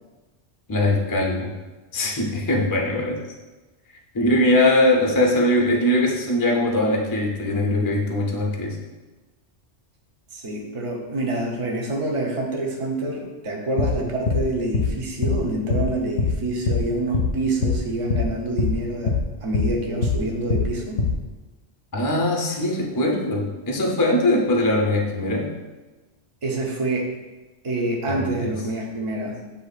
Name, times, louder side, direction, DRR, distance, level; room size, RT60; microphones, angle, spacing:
voice 1, 0.7-1.5 1.9-3.2 4.1-8.8 21.9-25.5 28.1-28.5, left 1 dB, 30° left, -1 dB, 0.4 m, -21 dB
voice 2, 10.3-19.1 19.4-21.0 26.4-27.1 27.6-29.5, right 2 dB, 35° right, -1 dB, 0.7 m, -27 dB
sound 1, 13.8-13.9 14.3-14.4 14.7-14.9 15.2-15.4 15.7-15.9 16.2-16.3 16.7-16.8 17.1-17.3 17.6-17.8 18.1-18.3 18.6-18.7 19.1-19.2 19.5-19.7 20.0-20.2 20.5-20.7 21.0-21.1, left 4 dB, 80° left, 0.9 m, -21 dB
8.1 x 2.7 x 2.4 m, 1.2 s
omnidirectional pair, 1.2 m